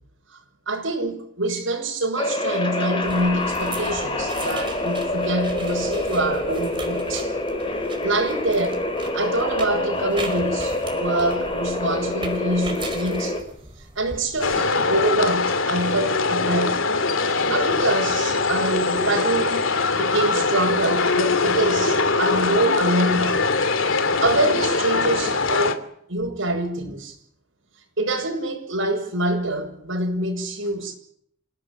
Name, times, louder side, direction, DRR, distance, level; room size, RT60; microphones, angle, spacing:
voice 1, 0.7-7.3 8.0-8.8 9.1-13.4 13.9-16.8 17.2-23.5 24.2-27.2 28.0-31.0, right 2 dB, 70° right, 6.6 m, -25 dB
sound 1, 2.2-13.4, left 2 dB, 25° left, 5.7 m, -26 dB
sound 2, 3.0-14.6, right 3 dB, 25° right, 5.0 m, -39 dB
sound 3, 14.4-25.8, left 3 dB, 75° left, 2.9 m, -22 dB
29.0 x 17.5 x 8.9 m
head